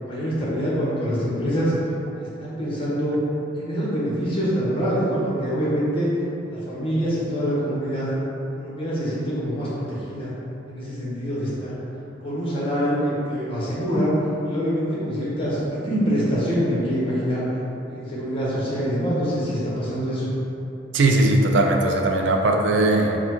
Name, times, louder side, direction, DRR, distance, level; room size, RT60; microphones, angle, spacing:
voice 1, 0.0-1.7 2.2-3.2 3.5-6.1 6.4-8.1 8.6-10.3 10.7-11.7 12.2-14.2 14.4-17.4 17.9-20.3, equal, 30° left, -8 dB, 1.1 m, -25 dB
voice 2, 20.9-23.2, right 2 dB, 80° right, 2 dB, 0.4 m, -19 dB
4.2 x 2.3 x 4.4 m, 2.8 s
head